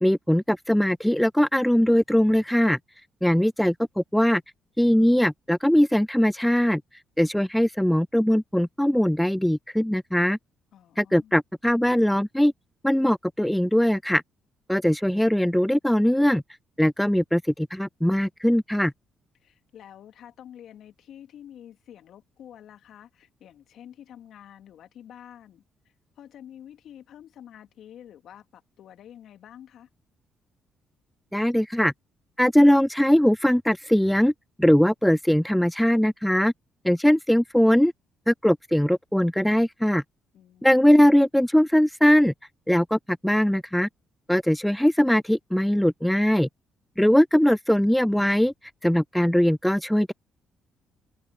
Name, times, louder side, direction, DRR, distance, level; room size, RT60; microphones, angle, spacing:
voice 1, 0.0-2.8 3.2-4.4 4.8-6.8 7.2-10.4 11.0-12.5 12.8-14.2 14.7-16.4 16.8-18.9 31.3-31.9 32.4-34.3 34.6-36.5 36.8-37.9 38.3-40.0 40.6-42.3 42.7-43.9 44.3-46.5 47.0-48.5 48.8-50.1, equal, 5° left, 0.4 m, -21 dB
voice 2, 10.7-11.4 19.3-29.9 40.3-41.0, left 10 dB, 70° left, 3.1 m, -48 dB
open air
hypercardioid pair, 55°, 0 cm